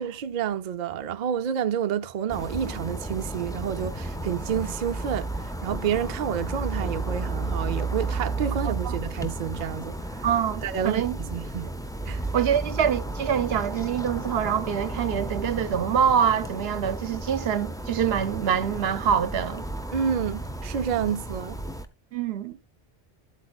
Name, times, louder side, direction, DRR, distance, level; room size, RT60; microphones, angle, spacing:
voice 1, 0.0-10.3 10.6-11.7 12.1-12.3 19.9-21.6, right 8 dB, 50° right, 0.6 m, -29 dB
sound 1, 2.3-21.9, right 2 dB, 5° left, 0.5 m, -33 dB
voice 2, 8.7-9.0 10.2-11.2 12.3-19.6 22.1-22.6, right 8 dB, 75° right, 0.9 m, -25 dB
11.5 x 8.3 x 2.3 m
omnidirectional pair, 1.1 m